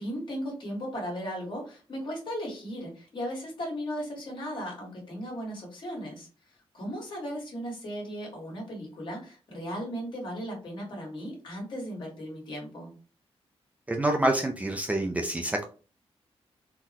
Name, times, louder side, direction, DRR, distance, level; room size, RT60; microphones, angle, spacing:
voice 1, 0.0-6.3 6.7-12.9, equal, 50° left, -2 dB, 1.5 m, -36 dB
voice 2, 13.9-15.7, right 1 dB, 15° right, 2 dB, 0.3 m, -27 dB
3.8 x 2.1 x 2.8 m, 0.36 s
wide cardioid pair, 145°, 10 cm